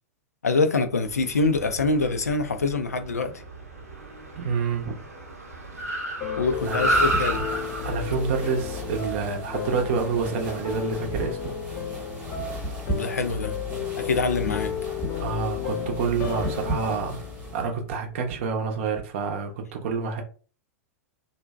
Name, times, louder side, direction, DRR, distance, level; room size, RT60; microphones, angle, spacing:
voice 1, 0.4-3.4 6.4-7.4 12.9-13.5 14.0-14.7, left 3 dB, 85° left, 0.3 m, -25 dB
Car, 0.9-10.5, right 1 dB, 85° right, 0.7 m, -32 dB
voice 2, 4.4-5.0 6.6-6.8 7.8-11.4 15.2-17.2 17.5-20.2, right 5 dB, 55° right, 0.6 m, -28 dB
sound 1, 6.2-18.3, left 7 dB, 35° left, 0.6 m, -33 dB
sound 2, 6.5-17.7, right 2 dB, 15° right, 1.0 m, -36 dB
2.5 x 2.1 x 2.3 m
figure-of-eight pair, 95°, 8 cm